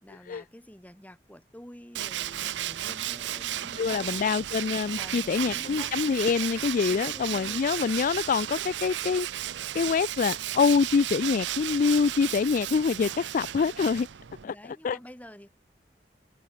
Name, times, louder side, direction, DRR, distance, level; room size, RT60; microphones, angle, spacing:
voice 1, 0.0-4.4 5.0-5.9 6.9-7.7 14.4-15.5, equal, 10° left, 3.5 m, -48 dB
Tools, 1.9-14.4, right 12 dB, 90° right, 0.6 m, -34 dB
voice 2, 3.8-14.1 14.4-15.0, left 5 dB, 50° left, 0.3 m, -26 dB
open air
head